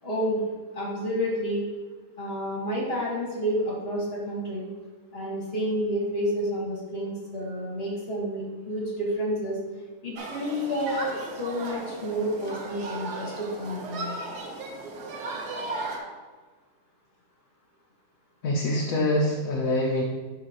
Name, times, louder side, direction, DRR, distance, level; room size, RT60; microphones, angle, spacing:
voice 1, 0.0-0.4 0.7-1.6 2.2-4.7 5.1-9.6 10.0-14.1, equal, 40° left, -4 dB, 2.0 m, -30 dB
Human group actions, 10.2-16.0, right 2 dB, 85° right, 1.5 m, -36 dB
voice 2, 18.4-20.0, left 1 dB, 65° left, -2 dB, 1.2 m, -25 dB
11.5 x 3.9 x 3.0 m, 1.4 s
omnidirectional pair, 1.6 m